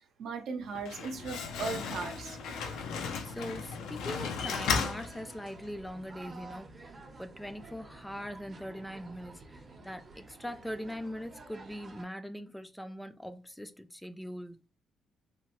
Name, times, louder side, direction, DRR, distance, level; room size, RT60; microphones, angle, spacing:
voice 1, 0.2-2.4, right 4 dB, 75° right, 0.6 m, -37 dB
Slam, 0.6-5.7, left 5 dB, 85° left, 0.4 m, -35 dB
sound 1, 1.1-12.0, right 2 dB, 40° right, 0.7 m, -51 dB
voice 2, 3.2-6.8 7.2-14.6, equal, 5° left, 0.3 m, -41 dB
2.8 x 2.1 x 3.0 m
cardioid pair, 90°, 0 cm